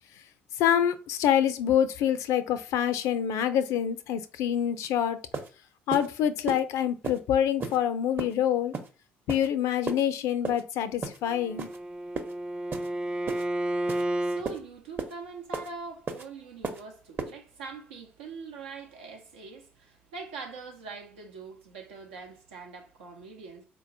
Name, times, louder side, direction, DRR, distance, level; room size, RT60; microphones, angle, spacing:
voice 1, 0.6-5.2 5.9-8.7 9.3-11.7, left 10 dB, 65° left, 0.4 m, -26 dB
sound 1, 4.8-4.9 5.3-5.5 5.9-6.1 6.5-6.6 7.0-7.2 7.6-7.8 8.2-8.3 8.7-8.9 9.3-9.5 9.9-10.0 10.4-10.6 11.0-11.2 11.6-11.8 12.2-12.3 12.7-12.9 13.3-13.4 13.9-14.0 14.5-14.6 15.0-15.1 15.5-15.7 16.1-16.2 16.6-16.8 17.2-17.3, right 4 dB, 40° right, 0.9 m, -34 dB
Bowed string instrument, 11.3-14.5, right 1 dB, 15° right, 0.4 m, -31 dB
voice 2, 14.0-23.7, right 4 dB, 80° right, 0.8 m, -43 dB
4.1 x 2.7 x 2.7 m
hypercardioid pair, 50°, 6 cm